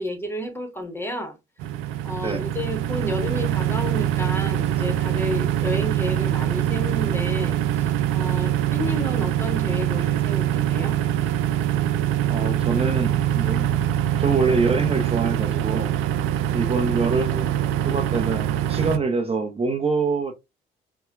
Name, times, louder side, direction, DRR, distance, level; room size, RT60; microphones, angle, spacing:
voice 1, 0.0-1.4 2.0-11.0, left 1 dB, 10° left, 1.2 m, -31 dB
sound 1, 1.6-19.0, right 11 dB, 75° right, 0.4 m, -23 dB
voice 2, 12.3-13.8 14.2-15.9 16.5-17.5 17.8-20.3, right 4 dB, 30° right, 0.8 m, -25 dB
4.2 x 2.3 x 2.4 m
hypercardioid pair, 55°, 21 cm